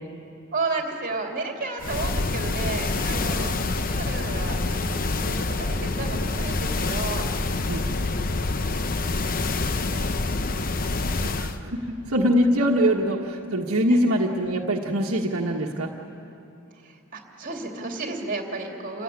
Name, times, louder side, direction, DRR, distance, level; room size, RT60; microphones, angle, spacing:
voice 1, 0.5-8.0 8.3-9.0 13.9-14.0 16.7-19.0, right 3 dB, 40° right, 2 dB, 2.9 m, -33 dB
sound 1, 1.8-11.6, left 3 dB, 40° left, 0.8 m, -26 dB
voice 2, 11.2-15.9, equal, 75° right, 0 dB, 1.4 m, -23 dB
28.5 x 15.5 x 9.8 m, 2.8 s
head